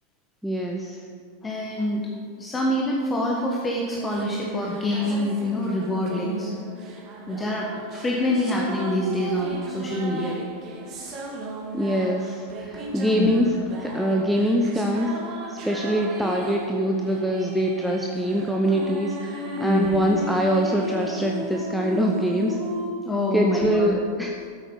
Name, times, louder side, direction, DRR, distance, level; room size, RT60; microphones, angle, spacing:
voice 1, 0.4-1.0 11.7-13.5 13.8-15.1 15.5-22.6 23.3-24.4, equal, ahead, 0 dB, 0.9 m, -24 dB
voice 2, 1.4-2.1 2.4-6.5 7.3-10.4 12.7-13.3 19.6-20.0 23.0-23.9, left 1 dB, 15° left, -2 dB, 1.5 m, -26 dB
sound 1, 3.8-22.9, right 1 dB, 35° right, 2.3 m, -36 dB
13.0 x 8.3 x 5.5 m, 2.1 s
figure-of-eight pair, 90°, 0 cm